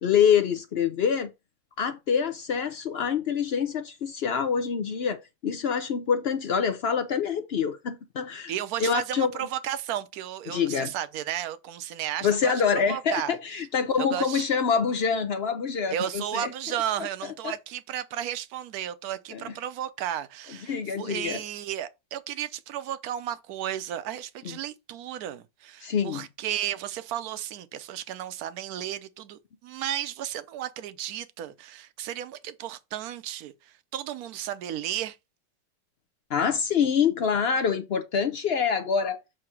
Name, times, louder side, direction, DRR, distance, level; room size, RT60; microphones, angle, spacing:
voice 1, 0.0-1.3 1.8-8.5 8.8-9.3 10.5-10.9 12.2-16.5 17.4-17.5 19.3-19.5 20.7-21.4 24.4-24.6 25.8-26.3 36.3-39.2, left 7 dB, 80° left, 0.5 m, -26 dB
voice 2, 8.5-13.4 14.0-14.4 15.9-35.2, right 11 dB, 65° right, 1.1 m, -33 dB
7.7 x 2.8 x 6.0 m
omnidirectional pair, 1.9 m